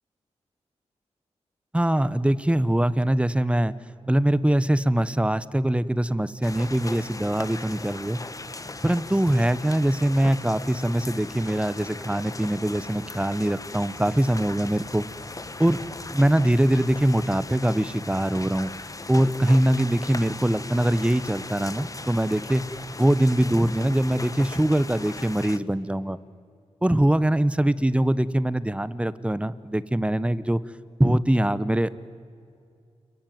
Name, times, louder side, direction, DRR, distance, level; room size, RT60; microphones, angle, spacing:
voice 1, 1.7-3.8 4.1-8.2 8.8-15.0 15.6-15.8 16.1-18.7 19.1-22.6 23.0-26.2 26.8-30.6 31.0-31.9, right 1 dB, 10° right, 16 dB, 1.0 m, -23 dB
sound 1, 6.4-25.6, left 3 dB, 30° left, 1.2 m, -38 dB
29.0 x 22.0 x 9.3 m, 2.4 s
cardioid pair, 55°, 12 cm